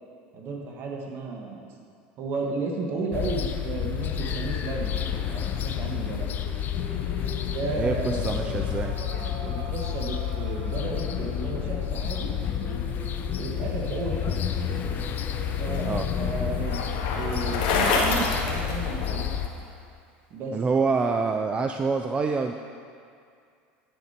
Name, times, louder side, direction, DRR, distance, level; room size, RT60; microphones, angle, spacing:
voice 1, 0.3-1.7 2.2-5.0 5.2-6.3 7.3-8.8 9.4-12.3 13.4-14.4 15.6-19.3 20.3-20.6, right 3 dB, 50° right, 1 dB, 1.6 m, -33 dB
sound 1, 3.1-19.5, left 9 dB, 40° left, 0.5 m, -30 dB
sound 2, 4.1-19.1, right 4 dB, 75° right, 1.0 m, -43 dB
voice 2, 7.7-9.0 15.8-16.1 20.5-22.5, right 4 dB, 20° right, 5 dB, 0.4 m, -26 dB
Bicycle, 15.0-19.5, left 4 dB, 85° left, 1.7 m, -28 dB
10.5 x 6.6 x 4.4 m, 2.3 s
supercardioid pair, 115°, 5 cm